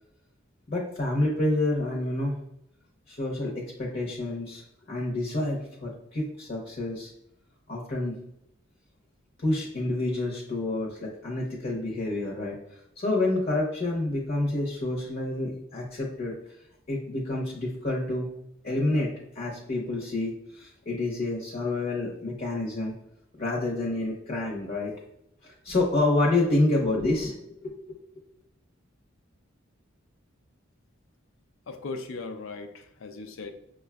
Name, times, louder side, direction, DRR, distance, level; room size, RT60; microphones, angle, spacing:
voice 1, 0.7-2.4 3.1-7.1 7.7-8.2 9.4-12.6 13.0-16.4 16.9-18.3 18.6-22.9 23.4-24.9 25.4-28.0, left 2 dB, 45° left, -2 dB, 0.8 m, -28 dB
voice 2, 31.7-33.5, left 3 dB, 75° left, 7 dB, 0.5 m, -38 dB
6.1 x 2.3 x 2.2 m, 0.78 s
head